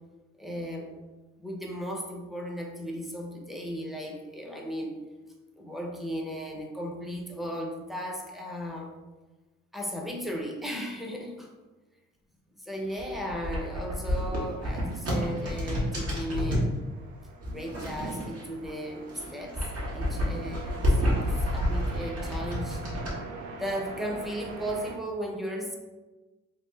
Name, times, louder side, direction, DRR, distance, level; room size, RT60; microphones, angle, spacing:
voice 1, 0.4-1.0 1.4-5.0 5.6-8.9 9.7-11.5 12.5-16.7 17.4-19.6 19.9-22.8 23.6-25.8, equal, ahead, 0 dB, 0.7 m, -36 dB
sound 1, 12.8-16.7 17.4-18.7 19.0-23.1, equal, 55° right, 1.5 m, -29 dB
sound 2, 15.0-25.0, right 3 dB, 75° right, 0.6 m, -44 dB
3.2 x 2.7 x 3.2 m, 1.2 s
cardioid pair, 75°, 29 cm